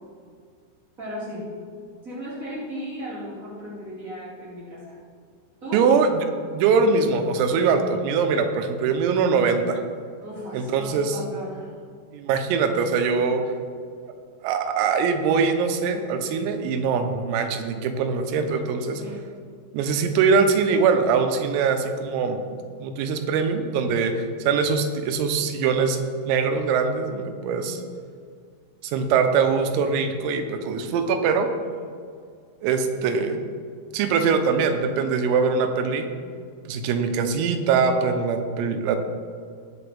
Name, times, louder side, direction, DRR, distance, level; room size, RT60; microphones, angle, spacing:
voice 1, 1.0-1.5 2.0-5.0 5.6-5.9 10.2-11.7 18.9-19.2, equal, 60° right, -8 dB, 0.8 m, -35 dB
voice 2, 5.7-6.3 6.5-9.8 10.5-11.2 12.1-13.4 14.4-19.0 19.7-22.4 22.8-27.8 28.8-31.5 32.6-33.4 33.9-36.1 36.7-39.0, right 5 dB, 90° right, 6 dB, 3.6 m, -22 dB
20.0 x 7.0 x 3.5 m, 2.1 s
omnidirectional pair, 5.9 m